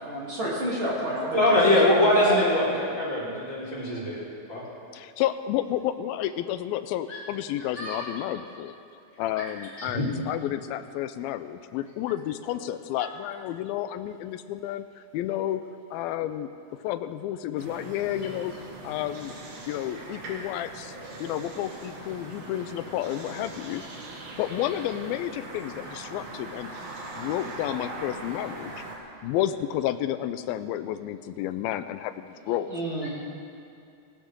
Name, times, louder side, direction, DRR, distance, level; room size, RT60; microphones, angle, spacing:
voice 1, 0.0-1.4 2.2-2.4 32.7-33.1, equal, 35° right, -6 dB, 3.7 m, -29 dB
voice 2, 1.3-4.2 4.5-4.6 7.1-7.2 7.6-8.1 9.8-10.1 13.0-13.1 33.0-33.1, left 1 dB, 20° left, -9 dB, 4.8 m, -23 dB
voice 3, 4.9-8.7 9.2-15.6 15.9-16.5 16.8-18.5 18.8-19.3 19.7-23.8 24.1-26.7 27.1-28.7 29.2-32.7, left 12 dB, 85° left, 11 dB, 2.4 m, -31 dB
sound 1, 17.6-29.0, right 2 dB, 80° right, 3.9 m, -41 dB
19.0 x 16.5 x 3.8 m, 2.6 s
omnidirectional pair, 4.3 m